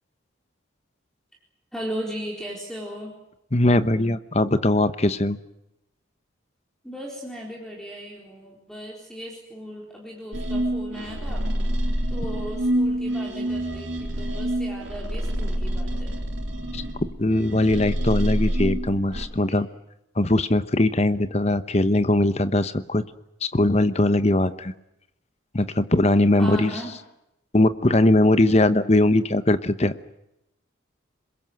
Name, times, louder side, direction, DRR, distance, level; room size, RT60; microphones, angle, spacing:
voice 1, 1.7-3.1 6.8-11.5 12.1-16.2 19.5-19.6 26.4-26.9, equal, 5° left, -1 dB, 4.0 m, -36 dB
voice 2, 3.5-5.4 16.7-16.8 17.2-19.7 20.2-23.0 23.5-24.7 25.5-26.7 27.5-29.9, left 1 dB, 30° left, 12 dB, 1.0 m, -20 dB
sound 1, 10.3-19.3, right 1 dB, 75° right, 4.9 m, -27 dB
26.5 x 21.5 x 7.8 m, 0.86 s
head